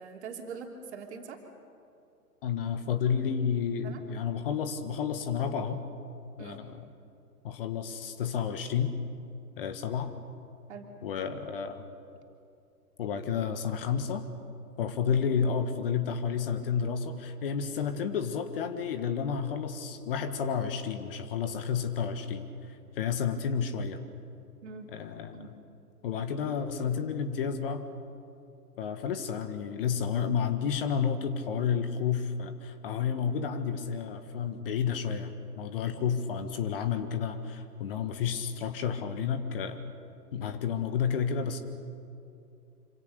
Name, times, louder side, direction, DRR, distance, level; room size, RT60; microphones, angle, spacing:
voice 1, 0.0-1.4 3.8-4.1 6.4-6.6 10.7-10.9 24.6-24.9 25.3-25.5, right 5 dB, 45° right, 2 dB, 3.3 m, -43 dB
voice 2, 2.4-5.8 6.4-6.8 7.4-8.9 9.6-10.1 11.0-11.8 13.0-14.3 14.8-22.5 22.9-24.0 24.9-25.5 26.0-27.8 28.8-39.9 40.3-41.6, left 7 dB, 35° left, 9 dB, 1.6 m, -31 dB
26.5 x 25.5 x 6.8 m, 2.6 s
figure-of-eight pair, 125°, 47 cm